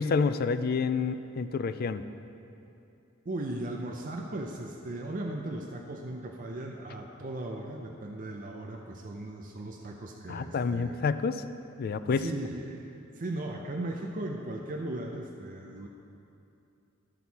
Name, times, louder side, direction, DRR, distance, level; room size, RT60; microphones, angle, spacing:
voice 1, 0.0-2.0 10.3-11.4 11.8-12.3, left 5 dB, 50° left, 12 dB, 0.4 m, -28 dB
voice 2, 3.3-11.0 12.0-15.9, right 1 dB, 45° right, 1 dB, 0.6 m, -37 dB
13.0 x 6.1 x 4.1 m, 2.7 s
head